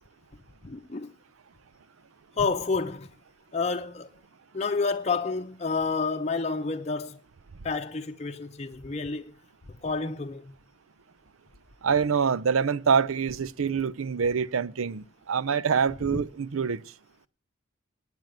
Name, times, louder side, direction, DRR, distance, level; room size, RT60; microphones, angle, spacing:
voice 1, 0.6-1.1 2.4-3.1 3.5-4.1 4.5-7.2 7.6-9.3 9.8-10.5 16.1-16.2, left 4 dB, 30° left, 0.7 m, -29 dB
voice 2, 11.8-16.8, right 6 dB, 90° right, 0.6 m, -25 dB
9.3 x 9.0 x 7.8 m
head